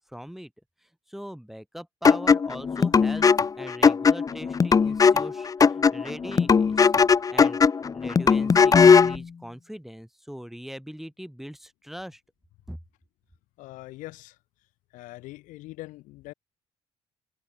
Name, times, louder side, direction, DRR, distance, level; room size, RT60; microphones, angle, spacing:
voice 1, 0.1-0.5 1.1-3.3 3.6-6.9 7.3-7.6 7.9-12.2 12.7-12.8, equal, ahead, 6.5 m, -41 dB
sound 1, 2.0-9.2, left 5 dB, 25° left, 0.5 m, -19 dB
voice 2, 13.6-14.4 14.9-16.3, left 19 dB, 65° left, 4.9 m, -42 dB
figure-of-eight pair, 45°, 14 cm